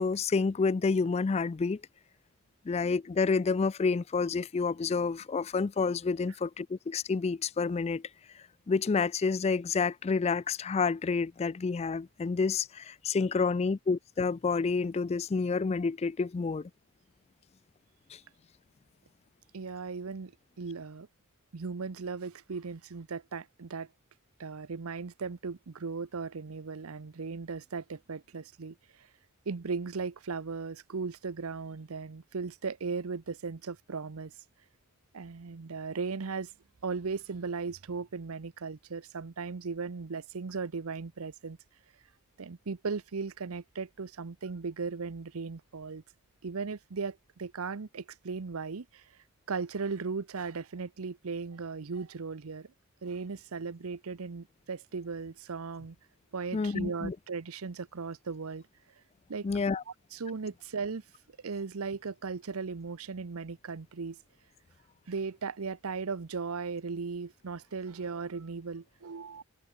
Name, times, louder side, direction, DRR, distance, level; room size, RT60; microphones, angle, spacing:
voice 1, 0.0-1.8 2.7-8.0 8.3-16.7 18.1-18.2 56.5-57.2 59.4-59.8, left 4 dB, 30° left, 0.3 m, -29 dB
voice 2, 19.5-21.1 21.5-23.9 24.4-29.1 29.5-34.3 35.1-36.5 36.8-41.6 42.4-46.0 46.4-49.0 49.5-52.7 53.0-56.0 56.3-58.6 59.3-59.5 60.1-61.0 61.4-64.2 65.1-69.4, right 4 dB, 75° right, 0.7 m, -37 dB
head